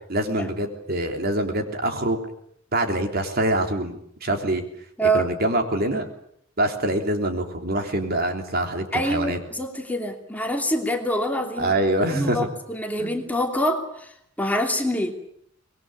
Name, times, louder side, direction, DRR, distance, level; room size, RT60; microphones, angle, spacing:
voice 1, 0.1-2.2 2.7-4.6 5.1-6.0 6.6-9.4 11.6-12.5 13.0-13.2, right 1 dB, 50° right, 5 dB, 3.6 m, -25 dB
voice 2, 5.0-5.3 8.9-11.7 12.1-15.1, equal, 10° left, 3 dB, 2.8 m, -25 dB
25.0 x 21.5 x 8.9 m, 0.69 s
head